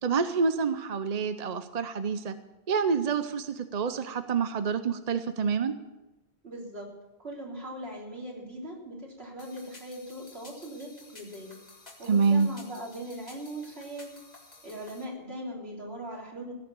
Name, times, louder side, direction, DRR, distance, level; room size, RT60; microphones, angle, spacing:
voice 1, 0.0-2.4 2.7-5.7 12.1-12.5, right 5 dB, 45° right, 10 dB, 0.7 m, -27 dB
voice 2, 6.4-6.9 7.2-11.6 12.0-14.2 14.6-16.5, right 1 dB, 75° right, -2 dB, 3.8 m, -40 dB
sound 1, 9.4-15.0, left 2 dB, 40° left, 2.0 m, -52 dB
16.5 x 7.0 x 8.4 m, 1.0 s
omnidirectional pair, 1.1 m